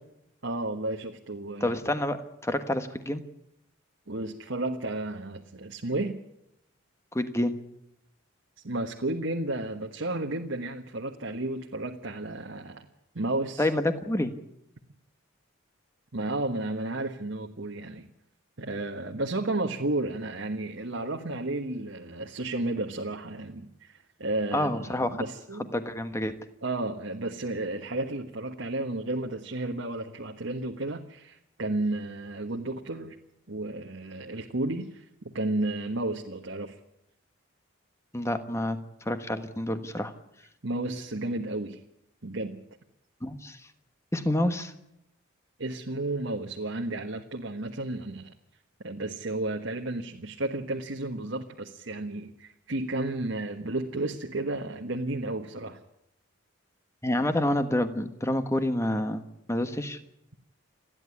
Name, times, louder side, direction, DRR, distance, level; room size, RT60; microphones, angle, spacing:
voice 1, 0.4-1.8 4.1-6.2 8.6-12.9 13.1-13.7 16.1-18.0 18.6-25.7 26.6-33.2 33.5-35.1 35.3-36.8 40.6-41.8 42.2-42.6 45.6-48.3 48.8-55.8, right 2 dB, 65° right, 2 dB, 1.4 m, -32 dB
voice 2, 1.6-3.2 7.1-7.5 13.6-14.3 24.5-25.2 25.7-26.3 38.1-38.8 39.0-40.1 43.2-43.6 44.1-44.7 57.0-59.2 59.5-60.0, left 1 dB, 15° left, 9 dB, 1.3 m, -28 dB
29.0 x 11.0 x 9.7 m, 0.82 s
head